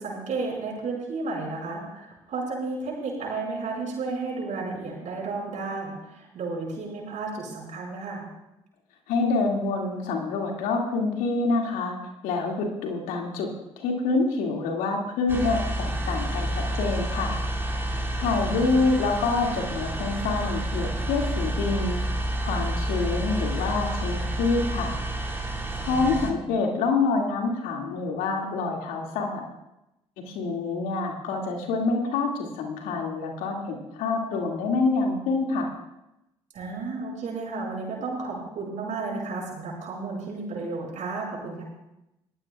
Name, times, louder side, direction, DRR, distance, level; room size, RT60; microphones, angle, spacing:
voice 1, 0.0-8.3 18.4-19.0 25.8-26.4 36.5-41.6, right 3 dB, 60° right, -1 dB, 5.5 m, -33 dB
voice 2, 9.1-12.0 12.2-13.5 13.8-17.4 18.2-22.0 22.4-25.0 25.8-29.4 30.3-35.7, left 3 dB, 75° left, 1 dB, 2.4 m, -26 dB
sound 1, 15.3-26.3, right 1 dB, 15° right, 3.3 m, -29 dB
21.0 x 14.5 x 2.4 m, 0.90 s
hypercardioid pair, 45°, 14 cm